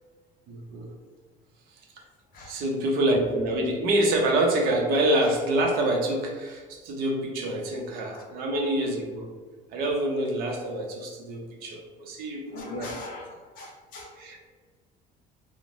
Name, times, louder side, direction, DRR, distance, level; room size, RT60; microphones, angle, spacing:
voice 1, 0.5-0.9 2.5-9.3 9.7-12.9 14.2-14.5, right 1 dB, 60° right, 1 dB, 0.5 m, -26 dB
voice 2, 12.5-14.2, left 2 dB, 50° left, -1 dB, 0.7 m, -40 dB
2.5 x 2.0 x 3.1 m, 1.5 s
cardioid pair, 170°, 18 cm